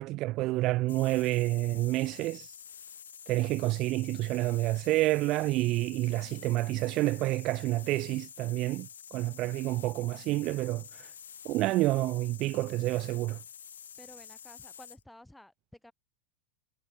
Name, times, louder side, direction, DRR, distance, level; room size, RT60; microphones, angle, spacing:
voice 1, 0.0-2.5 3.3-11.1 11.4-13.4, right 18 dB, 40° right, 0.5 m, -29 dB
sound 1, 0.9-15.0, left 8 dB, 65° left, 1.1 m, -48 dB
voice 2, 14.0-15.9, left 1 dB, 5° left, 4.9 m, -53 dB
figure-of-eight pair, 90°, 0 cm